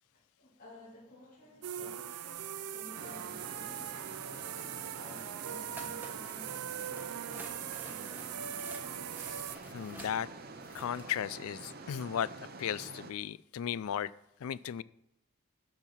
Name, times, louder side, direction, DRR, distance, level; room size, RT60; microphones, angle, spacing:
voice 1, 0.0-9.0, left 1 dB, 40° left, -6 dB, 3.6 m, -54 dB
sound 1, 1.6-9.6, right 9 dB, 90° right, 0.5 m, -41 dB
sound 2, 2.9-13.1, right 3 dB, 45° right, 0.7 m, -48 dB
sound 3, 5.7-6.6 7.0-11.2, right 1 dB, 10° right, 1.2 m, -51 dB
voice 2, 9.2-9.5 9.7-10.3 10.7-14.1 14.4-14.8, left 9 dB, 75° left, 19 dB, 0.3 m, -36 dB
12.0 x 4.5 x 5.7 m, 0.82 s
head